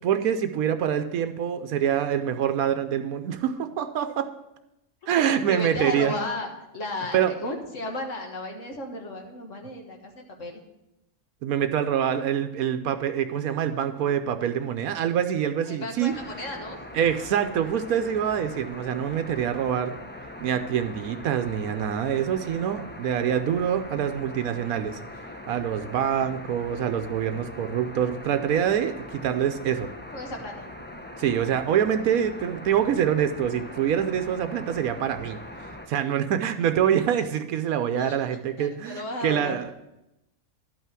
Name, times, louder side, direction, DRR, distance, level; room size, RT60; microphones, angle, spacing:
voice 1, 0.0-4.3 5.1-6.2 7.1-7.3 11.4-16.1 16.9-19.9 20.4-25.0 25.5-29.9 31.2-39.7, right 9 dB, 85° right, 8 dB, 1.1 m, -25 dB
voice 2, 5.2-10.6 15.7-16.8 30.1-30.7 37.9-38.2 38.6-39.6, left 1 dB, 60° left, 2 dB, 1.8 m, -34 dB
sound 1, 16.1-35.9, left 1 dB, 15° left, 0.4 m, -41 dB
11.5 x 5.6 x 6.1 m, 0.89 s
omnidirectional pair, 1.5 m